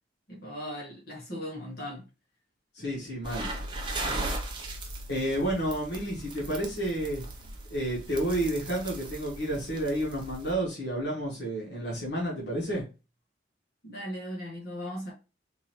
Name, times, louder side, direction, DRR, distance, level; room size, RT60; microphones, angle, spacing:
voice 1, 0.3-2.1 13.8-15.1, equal, 55° left, 1.3 m, -38 dB
voice 2, 2.7-3.5 5.1-7.2 7.7-12.8, right 1 dB, 75° left, 1.5 m, -30 dB
sound 1, 3.2-10.5, right 2 dB, 25° right, 0.6 m, -37 dB
3.8 x 2.7 x 3.0 m
head